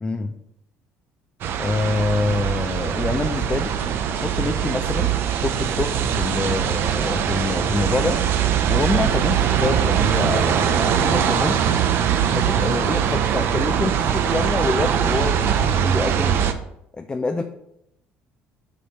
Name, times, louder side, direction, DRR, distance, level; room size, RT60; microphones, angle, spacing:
voice 1, 0.0-0.3 1.6-3.7 4.1-5.1 5.4-8.2 8.7-11.7 12.3-16.5 16.9-17.4, left 3 dB, 20° left, 6 dB, 0.5 m, -26 dB
sound 1, 1.4-16.5, right 8 dB, 65° right, 0.5 m, -21 dB
sound 2, 2.1-11.5, left 3 dB, 85° left, 2.4 m, -43 dB
6.9 x 3.6 x 4.3 m, 0.77 s
supercardioid pair, 80°, 4 cm